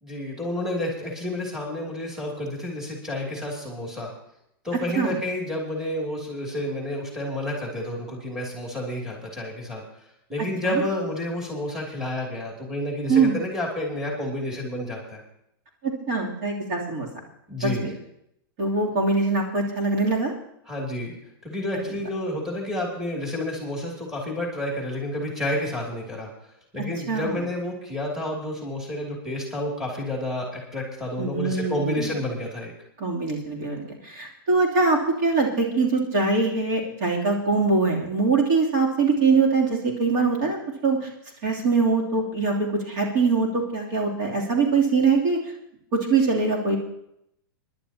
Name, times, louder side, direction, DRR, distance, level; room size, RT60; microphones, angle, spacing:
voice 1, 0.0-4.1 4.6-9.8 10.3-15.2 17.5-17.9 20.7-21.1 21.4-32.7, left 1 dB, 5° right, -2 dB, 2.8 m, -30 dB
voice 2, 15.8-17.1 17.6-17.9 18.6-20.3 26.8-27.4 31.2-32.1 33.0-41.1 41.4-45.4 45.9-46.8, right 4 dB, 50° right, -1 dB, 3.1 m, -23 dB
25.5 x 11.0 x 2.9 m, 0.78 s
hypercardioid pair, 150°, 12 cm